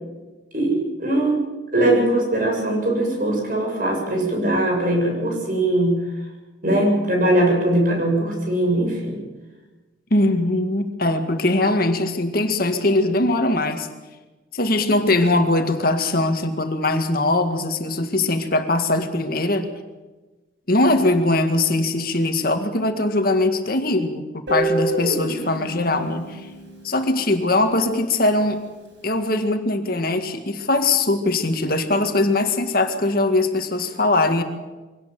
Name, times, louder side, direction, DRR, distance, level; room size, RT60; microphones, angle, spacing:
voice 1, 0.5-1.4 1.7-6.0 6.6-9.2, right 1 dB, 45° right, 1 dB, 7.5 m, -20 dB
voice 2, 10.1-13.9 14.5-19.7 20.7-26.4 26.8-28.6 29.0-34.4, left 2 dB, 50° left, 6 dB, 2.0 m, -21 dB
Guitar, 24.5-27.4, right 1 dB, 70° right, 7.1 m, -27 dB
23.5 x 18.0 x 7.7 m, 1.2 s
head